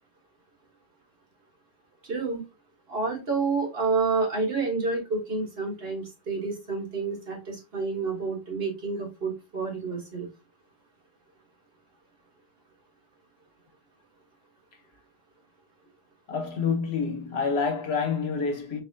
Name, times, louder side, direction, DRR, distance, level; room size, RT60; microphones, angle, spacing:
voice 1, 2.0-2.4 2.9-10.3, right 4 dB, 60° right, 1.7 m, -29 dB
voice 2, 16.3-18.8, left 5 dB, 70° left, 1.2 m, -27 dB
4.1 x 3.5 x 2.7 m
omnidirectional pair, 1.1 m